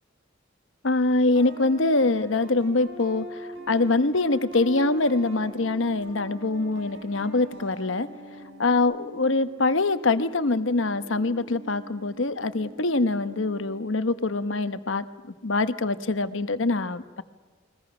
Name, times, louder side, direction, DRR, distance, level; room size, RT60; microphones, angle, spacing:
voice 1, 0.8-3.3 3.7-8.1 8.6-15.0 15.4-17.2, left 3 dB, 70° left, 11 dB, 1.1 m, -24 dB
sound 1, 1.3-8.8, equal, 70° right, 6.4 m, -42 dB
sound 2, 3.6-13.9, right 1 dB, 45° right, 2.1 m, -47 dB
29.5 x 22.5 x 6.1 m, 1.4 s
head